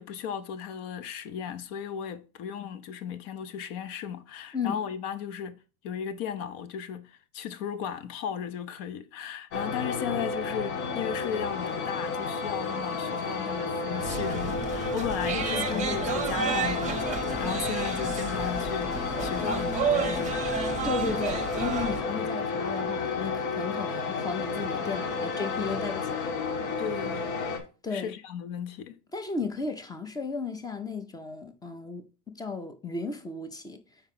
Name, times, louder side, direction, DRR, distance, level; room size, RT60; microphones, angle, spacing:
voice 1, 0.0-5.6 5.8-20.4 26.8-27.3 27.9-29.0, left 8 dB, 60° left, 0.7 m, -36 dB
sound 1, 9.5-27.6, left 4 dB, 80° left, 1.5 m, -31 dB
sound 2, 14.0-22.0, right 6 dB, 20° right, 0.7 m, -32 dB
voice 2, 15.3-16.0 20.8-26.3 27.8-28.1 29.1-33.8, left 4 dB, 10° left, 0.4 m, -34 dB
4.7 x 4.5 x 5.7 m
cardioid pair, 165°, 39 cm